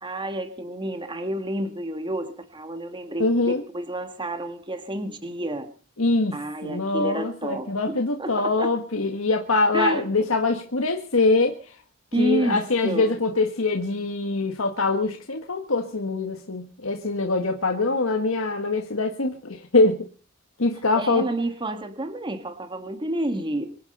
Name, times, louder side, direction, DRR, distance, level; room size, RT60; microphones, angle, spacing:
voice 1, 0.0-5.7 6.3-8.8 9.7-10.0 12.1-13.2 20.9-23.7, right 1 dB, 25° right, 8 dB, 1.7 m, -30 dB
voice 2, 3.2-3.6 6.0-11.8 12.2-20.1 20.6-21.3, left 3 dB, 85° left, 3 dB, 1.7 m, -23 dB
25.0 x 9.6 x 5.5 m, 0.40 s
head